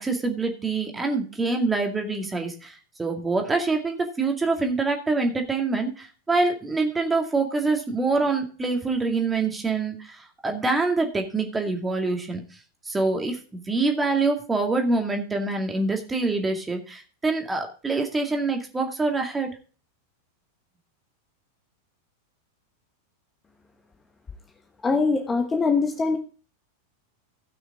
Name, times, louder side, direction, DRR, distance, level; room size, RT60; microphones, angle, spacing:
voice 1, 0.0-12.4 12.9-19.5, right 3 dB, 10° right, 3 dB, 2.2 m, -25 dB
voice 2, 24.8-26.2, left 4 dB, 15° left, 5 dB, 1.1 m, -22 dB
16.0 x 6.3 x 3.8 m, 0.37 s
figure-of-eight pair, 90°, 0 cm